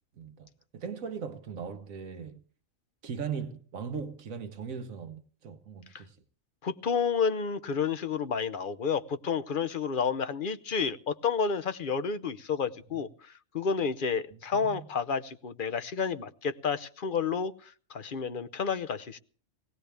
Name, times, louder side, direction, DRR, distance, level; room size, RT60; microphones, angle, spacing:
voice 1, 0.2-2.4 3.0-6.2 12.9-13.0 14.3-14.8, right 6 dB, 80° right, 1.4 m, -39 dB
voice 2, 6.6-19.2, left 6 dB, 45° left, 0.9 m, -30 dB
19.5 x 17.0 x 3.4 m
omnidirectional pair, 1.4 m